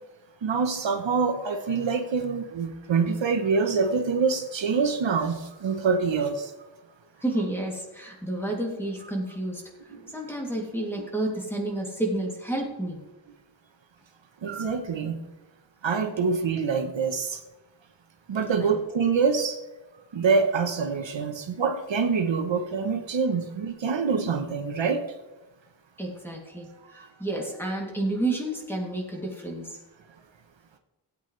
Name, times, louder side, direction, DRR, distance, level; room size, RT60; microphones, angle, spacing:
voice 1, 0.4-6.5 11.0-11.1 14.4-15.2 15.8-17.4 18.3-19.6 20.1-25.0, right 5 dB, 65° right, 6 dB, 1.1 m, -25 dB
voice 2, 7.2-13.0 18.6-18.7 26.0-29.8, right 1 dB, 5° left, -1 dB, 2.6 m, -30 dB
17.5 x 8.5 x 3.3 m, 1.0 s
wide cardioid pair, 145°, 48 cm